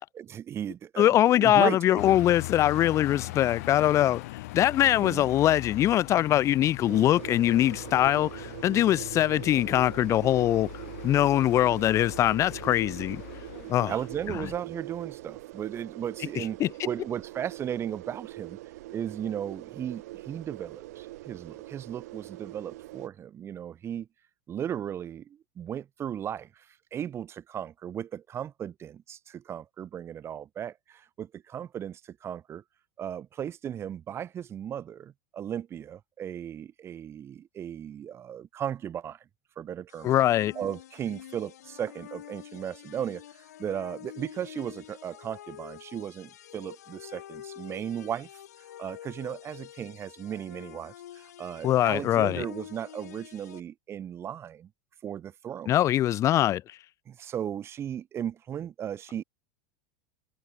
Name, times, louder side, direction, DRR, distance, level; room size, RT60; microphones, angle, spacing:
voice 1, 0.1-2.2 5.0-5.3 13.9-18.6 18.9-24.1 24.5-32.6 33.0-39.2 39.6-40.1 40.5-48.3 48.8-54.7 55.0-55.7 57.1-59.2, right 9 dB, 30° right, 2.7 m, -36 dB
voice 2, 1.0-4.2 4.5-10.7 11.0-13.2 13.7-13.9 14.4-14.5 16.4-16.7 40.0-40.5 51.6-52.4 55.7-56.6, left 13 dB, 35° left, 0.9 m, -23 dB
sound 1, 2.0-14.6, left 19 dB, 70° left, 2.5 m, -41 dB
sound 2, 6.9-23.1, right 18 dB, 75° right, 2.1 m, -43 dB
sound 3, 39.9-53.6, left 12 dB, 90° left, 5.0 m, -47 dB
supercardioid pair, 120°, 9 cm